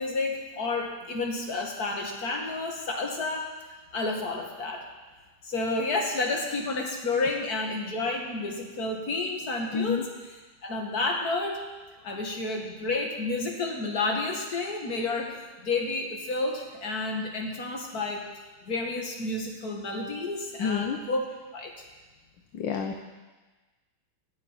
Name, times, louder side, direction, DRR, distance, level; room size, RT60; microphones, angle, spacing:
voice 1, 0.0-3.5 3.9-4.9 5.4-10.1 10.6-11.6 12.0-21.3 21.5-21.8, left 3 dB, 45° left, 1 dB, 2.5 m, -30 dB
voice 2, 9.7-10.0 12.1-12.2 20.6-21.0 22.5-23.0, left 7 dB, 65° left, 4 dB, 1.6 m, -29 dB
15.5 x 7.3 x 10.0 m, 1.2 s
omnidirectional pair, 2.4 m